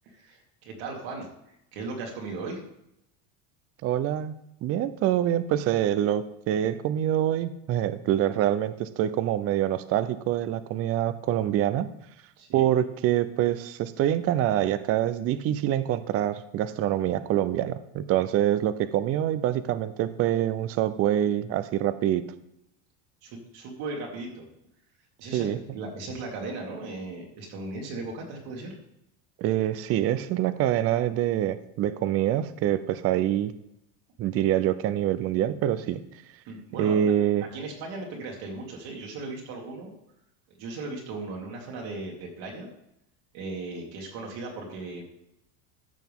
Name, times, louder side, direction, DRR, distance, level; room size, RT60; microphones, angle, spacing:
voice 1, 0.0-2.6 12.4-12.7 23.2-24.4 25.2-28.7 36.5-37.0 37.5-39.9 40.6-42.7 43.3-45.0, right 3 dB, 60° right, -1 dB, 2.4 m, -37 dB
voice 2, 3.8-11.9 12.5-22.2 25.3-25.6 29.4-33.5 34.2-36.0 36.8-37.5, right 11 dB, 35° right, 14 dB, 0.5 m, -25 dB
14.0 x 5.9 x 3.6 m, 0.80 s
cardioid pair, 140°, 42 cm